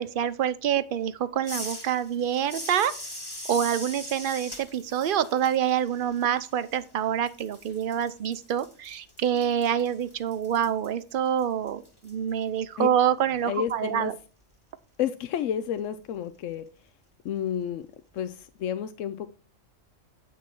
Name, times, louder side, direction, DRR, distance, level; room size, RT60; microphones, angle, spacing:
voice 1, 0.0-2.9 3.5-14.1, right 9 dB, 50° right, 14 dB, 0.8 m, -26 dB
sound 1, 1.4-7.0 7.3-12.1, left 1 dB, 20° left, 2.3 m, -41 dB
voice 2, 13.4-14.1 15.0-16.6 17.2-17.9 18.1-19.3, left 9 dB, 85° left, 10 dB, 1.0 m, -30 dB
9.4 x 6.2 x 4.5 m, 0.35 s
omnidirectional pair, 1.3 m